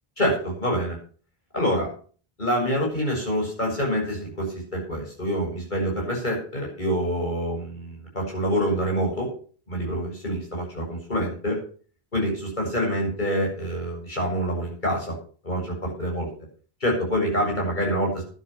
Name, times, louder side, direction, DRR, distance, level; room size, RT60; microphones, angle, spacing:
voice 1, 0.2-1.0 1.5-1.9 2.4-9.3 9.7-11.6 12.1-15.2 15.4-16.3 16.8-18.2, equal, 50° left, -1 dB, 7.7 m, -26 dB
12.0 x 11.0 x 5.9 m, 0.42 s
omnidirectional pair, 1.0 m